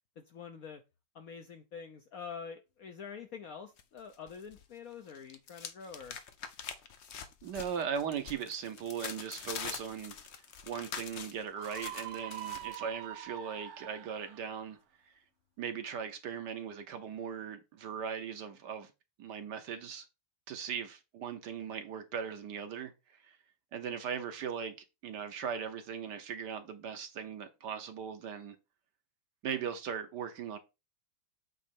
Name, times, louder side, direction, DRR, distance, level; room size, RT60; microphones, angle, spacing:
voice 1, 0.2-0.8 1.1-6.2, left 6 dB, 65° left, 0.9 m, -46 dB
sound 1, 3.8-4.6 4.9-12.8, left 7 dB, 85° left, 0.5 m, -45 dB
voice 2, 7.4-10.2 10.6-14.8 15.6-18.9 19.2-20.0 20.5-23.4 23.7-24.7 25.0-28.6 29.4-30.6, right 7 dB, 65° right, 1.3 m, -39 dB
Screaming, 11.5-14.5, right 12 dB, 90° right, 0.8 m, -44 dB
8.5 x 3.1 x 5.2 m
omnidirectional pair, 2.2 m